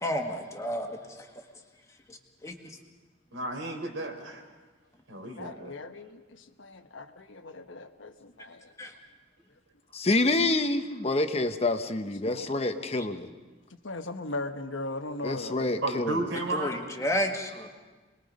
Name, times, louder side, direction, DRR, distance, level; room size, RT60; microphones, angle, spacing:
voice 1, 0.0-1.3 2.1-2.8 8.8-8.9 13.0-13.1 16.5-17.7, equal, 15° left, 3 dB, 1.8 m, -32 dB
voice 2, 3.3-4.4 5.1-5.7 15.8-16.8, right 2 dB, 90° right, 3 dB, 3.8 m, -33 dB
voice 3, 5.4-8.7 12.2-13.1 13.8-15.7, left 2 dB, 80° left, 7 dB, 1.3 m, -39 dB
voice 4, 9.9-13.3 15.2-16.2, left 2 dB, 30° left, 8 dB, 0.9 m, -27 dB
28.0 x 20.5 x 5.3 m, 1.3 s
head